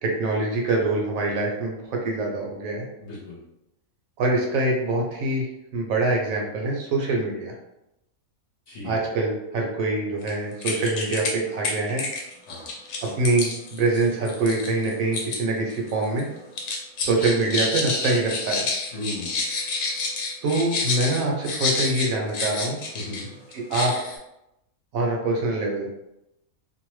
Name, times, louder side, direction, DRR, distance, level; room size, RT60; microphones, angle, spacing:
voice 1, 0.0-2.8 4.2-5.5 5.7-7.5 8.8-12.0 13.0-16.3 17.0-18.7 20.4-22.8 23.5-23.9 24.9-25.9, right 2 dB, 75° right, -1 dB, 1.0 m, -24 dB
voice 2, 3.0-3.4 8.7-9.0 12.5-12.7 18.9-19.4 22.9-23.3, left 2 dB, 55° left, -6 dB, 1.0 m, -36 dB
sound 1, 10.2-10.3 10.6-11.3 11.6-15.4 15.7-16.2 16.6-23.2 23.5-24.2, left 3 dB, 85° left, 1.1 m, -29 dB
2.7 x 2.1 x 3.0 m, 0.88 s
omnidirectional pair, 1.5 m